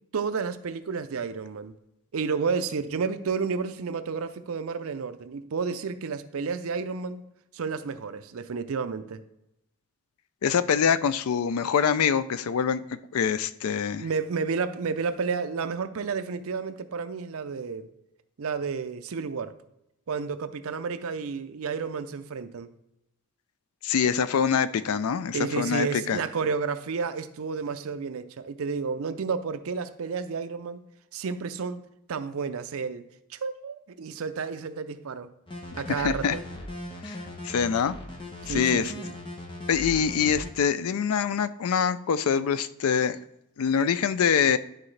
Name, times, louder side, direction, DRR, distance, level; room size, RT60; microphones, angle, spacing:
voice 1, 0.1-1.7 2.1-7.3 7.5-9.2 14.0-17.9 18.4-19.5 20.1-22.7 25.3-30.8 31.1-35.3 35.8-36.4 38.4-39.1, right 5 dB, 70° right, 11 dB, 0.5 m, -31 dB
voice 2, 10.4-12.8 13.1-14.1 23.8-26.2 35.9-36.4 37.0-37.2 37.4-38.0 38.5-38.9 39.7-43.2 43.6-44.6, left 7 dB, 75° left, 14 dB, 0.4 m, -24 dB
sound 1, 35.5-40.5, left 1 dB, 20° left, 0.9 m, -39 dB
11.0 x 3.9 x 3.2 m, 0.85 s
head